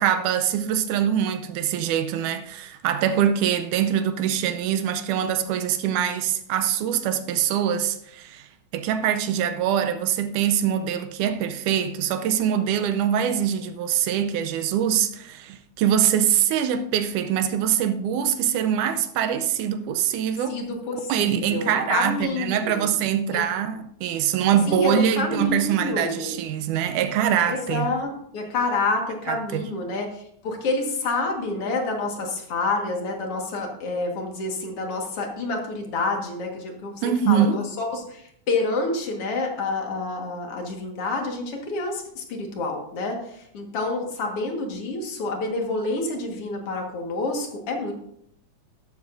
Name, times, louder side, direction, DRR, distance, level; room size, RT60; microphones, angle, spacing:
voice 1, 0.0-8.5 8.7-20.6 21.1-27.9 29.3-29.7 37.0-37.7, right 9 dB, 90° right, 2.1 m, -23 dB
voice 2, 20.5-22.8 23.3-23.4 24.7-26.4 27.4-47.9, left 3 dB, 50° left, 2.4 m, -28 dB
12.5 x 12.0 x 2.6 m
omnidirectional pair, 3.6 m